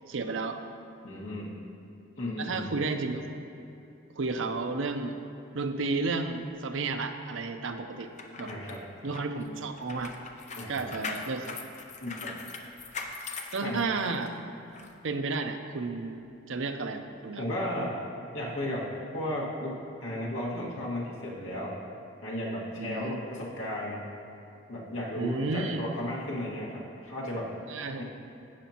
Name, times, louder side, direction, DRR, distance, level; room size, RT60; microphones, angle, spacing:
voice 1, 0.1-0.6 2.4-3.3 4.2-5.2 5.5-8.1 8.4-8.5 9.0-10.1 10.7-11.6 13.5-14.3 15.0-17.5 22.8-23.3 25.2-25.8 27.7-28.0, right 3 dB, 75° right, 7 dB, 0.6 m, -32 dB
voice 2, 1.0-1.6 2.2-2.7 8.4-8.8 10.5-10.8 12.0-12.3 13.6-13.8 17.4-18.0 18.3-21.8 22.2-24.1 24.7-27.5 28.0-28.1, left 1 dB, 75° left, -5 dB, 2.0 m, -34 dB
sound 1, 8.0-14.3 14.7-14.9, left 4 dB, 35° left, 0.6 m, -41 dB
12.5 x 8.2 x 2.9 m, 2.7 s
head